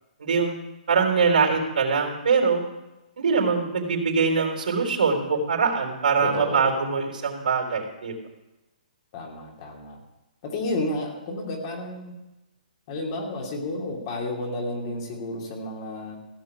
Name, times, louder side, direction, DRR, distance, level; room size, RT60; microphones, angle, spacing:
voice 1, 0.2-0.6 0.9-2.6 3.2-8.2, right 5 dB, 75° right, 2 dB, 3.6 m, -23 dB
voice 2, 6.2-6.7 9.1-10.0 10.4-12.1 12.9-16.2, left 2 dB, 35° left, 0 dB, 2.8 m, -31 dB
16.0 x 6.0 x 8.5 m, 1.0 s
hypercardioid pair, 160°, 5 cm